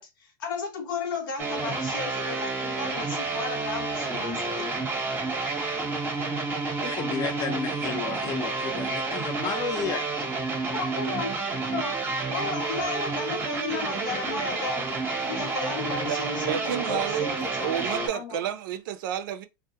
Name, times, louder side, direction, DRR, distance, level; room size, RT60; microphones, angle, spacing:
voice 1, 0.0-4.7 10.7-11.3 11.7-12.0 12.3-14.9 15.2-18.4, left 4 dB, 80° left, 0.9 m, -34 dB
sound 1, 1.4-18.1, right 3 dB, 20° right, 0.7 m, -30 dB
voice 2, 6.8-10.1, left 6 dB, 35° left, 0.5 m, -32 dB
voice 3, 16.0-19.5, right 10 dB, 75° right, 0.4 m, -31 dB
2.2 x 2.0 x 2.8 m
supercardioid pair, 115°, 11 cm